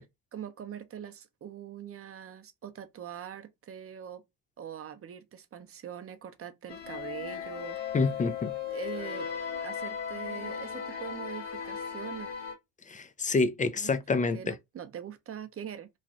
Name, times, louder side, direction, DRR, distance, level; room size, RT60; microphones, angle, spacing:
voice 1, 0.3-4.2 4.6-7.8 8.7-9.3 9.6-12.3 13.8-15.9, right 9 dB, 30° right, 0.6 m, -42 dB
sound 1, 6.7-12.5, left 8 dB, 60° left, 1.2 m, -37 dB
voice 2, 7.9-8.5 12.9-14.6, left 4 dB, 20° left, 0.3 m, -28 dB
3.1 x 2.2 x 2.6 m
supercardioid pair, 75°, 47 cm